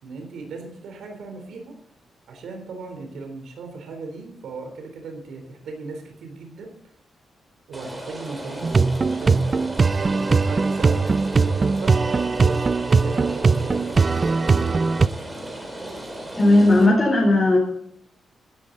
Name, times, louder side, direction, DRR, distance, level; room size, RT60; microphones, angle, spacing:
voice 1, 0.0-1.7 2.3-6.7 7.7-9.5 10.0-11.0 11.4-14.6, right 3 dB, 80° right, 4 dB, 3.9 m, -37 dB
Rain, 7.7-16.9, right 1 dB, 15° right, 4.3 m, -36 dB
sound 1, 8.6-15.1, right 4 dB, 30° right, 0.5 m, -20 dB
voice 2, 16.4-17.6, left 2 dB, 15° left, -3 dB, 4.1 m, -16 dB
16.0 x 13.0 x 4.1 m, 0.68 s
cardioid pair, 120°, 0 cm